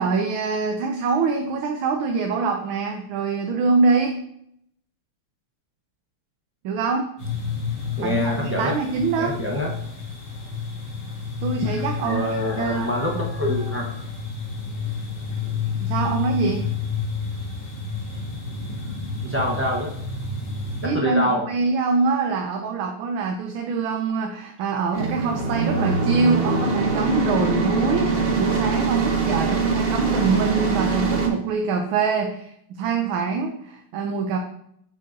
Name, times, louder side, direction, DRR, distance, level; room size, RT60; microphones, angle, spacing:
voice 1, 0.0-4.2 6.6-7.1 8.0-9.4 11.4-12.3 12.6-12.9 15.8-16.7 20.8-32.5 32.8-34.4, right 4 dB, 75° right, 3 dB, 1.4 m, -24 dB
sound 1, 7.2-20.9, left 5 dB, 75° left, 2.8 m, -30 dB
voice 2, 8.0-8.7 9.2-9.7 12.0-13.9 19.2-19.9 20.8-21.4, equal, 15° right, -3 dB, 0.4 m, -25 dB
sound 2, 24.9-31.3, right 4 dB, 45° right, 0.7 m, -23 dB
9.1 x 5.6 x 2.7 m, 0.71 s
omnidirectional pair, 2.4 m